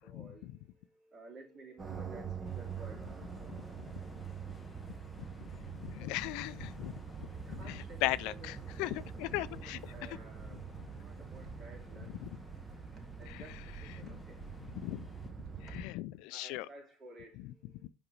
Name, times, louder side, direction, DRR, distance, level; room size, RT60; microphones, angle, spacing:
voice 1, 0.0-4.0 7.3-8.5 9.4-10.6 10.9-12.2 12.9-14.5 15.7-15.8 16.3-17.9, right 1 dB, 40° right, 2.6 m, -55 dB
sound 1, 1.8-15.9, right 6 dB, 25° right, 1.0 m, -45 dB
sound 2, 2.4-15.3, left 3 dB, 20° left, 0.8 m, -57 dB
voice 2, 5.8-6.9 7.5-8.3 8.8-8.9 9.2-9.8 14.8-15.0 15.8-16.7, left 17 dB, 70° left, 0.4 m, -36 dB
5.6 x 5.3 x 3.9 m
supercardioid pair, 115°, 0 cm